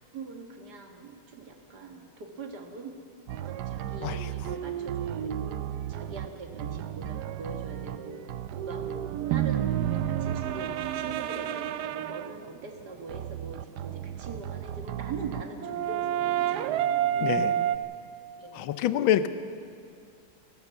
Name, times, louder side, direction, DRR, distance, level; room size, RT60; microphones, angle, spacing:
voice 1, 0.1-3.0 3.4-5.6 5.9-8.2 8.5-9.7 10.0-17.1 18.4-18.7, right 4 dB, 50° right, 3 dB, 2.2 m, -42 dB
sound 1, 3.3-12.4 13.1-17.8, right 10 dB, 75° right, 0.9 m, -31 dB
voice 2, 17.2-17.5 18.5-19.3, left 11 dB, 70° left, 12 dB, 1.5 m, -26 dB
29.5 x 12.0 x 7.2 m, 2.3 s
omnidirectional pair, 2.4 m